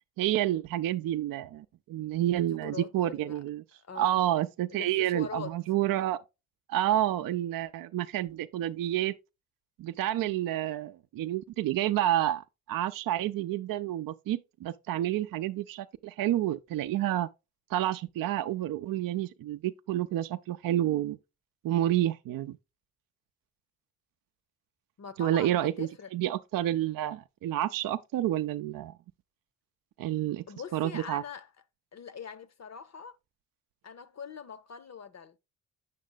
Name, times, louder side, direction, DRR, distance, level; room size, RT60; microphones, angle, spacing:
voice 1, 0.2-3.6 4.0-6.2 6.7-9.2 9.8-17.3 17.7-21.2 21.6-22.6 25.2-28.9 30.0-30.4 30.7-31.2, right 13 dB, 50° right, 0.5 m, -29 dB
voice 2, 2.4-3.4 3.7-4.2 4.7-5.6 10.1-10.4 25.0-26.1 30.5-31.5 31.9-33.2 33.8-35.4, left 6 dB, 40° left, 0.7 m, -43 dB
7.5 x 6.4 x 2.2 m
hypercardioid pair, 45°, 44 cm